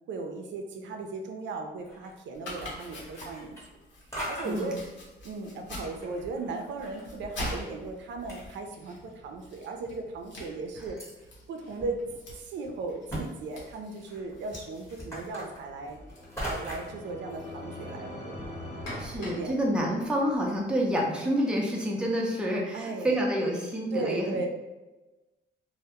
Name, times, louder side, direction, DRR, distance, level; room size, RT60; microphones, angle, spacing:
voice 1, 0.1-3.7 4.3-4.8 5.2-11.0 11.5-12.1 12.3-16.0 16.4-18.4 19.2-20.1 22.7-23.5 23.9-24.5, right 3 dB, 70° right, 4 dB, 0.4 m, -37 dB
sound 1, 1.8-2.2 2.5-3.9 4.1-4.7 5.4-7.0 7.3-7.4 8.0-8.1 8.3-9.1 9.6-9.7 10.4-11.1 11.8-11.9 12.3-12.4 13.1-13.2 13.5-17.0, equal, 15° left, 1.0 m, -40 dB
Domestic sounds home sounds, 2.3-20.8, left 1 dB, 65° left, 0.8 m, -45 dB
sound 2, 15.6-20.2, left 1 dB, 35° left, 0.7 m, -43 dB
voice 2, 19.0-24.5, equal, 5° right, -2 dB, 0.5 m, -28 dB
2.2 x 2.0 x 2.9 m, 1.1 s
cardioid pair, 90°, 20 cm